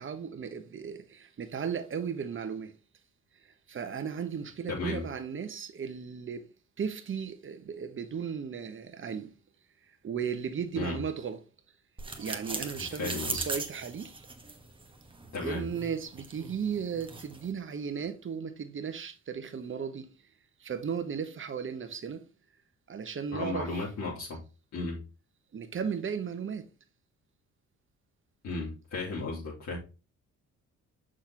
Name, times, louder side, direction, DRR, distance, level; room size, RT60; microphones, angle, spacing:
voice 1, 0.0-2.7 3.7-6.5 6.8-9.3 10.0-11.4 12.2-14.3 15.4-20.1 20.6-22.2 22.9-23.8 25.5-26.7, right 7 dB, 40° right, 1.1 m, -35 dB
voice 2, 4.7-5.0 10.7-11.0 12.9-13.5 15.3-15.6 23.3-24.4 24.7-25.0 28.4-29.8, left 3 dB, 65° left, 3.2 m, -34 dB
sound 1, 12.0-17.5, right 3 dB, 15° right, 1.3 m, -40 dB
6.4 x 6.2 x 3.0 m
cardioid pair, 90°, 30 cm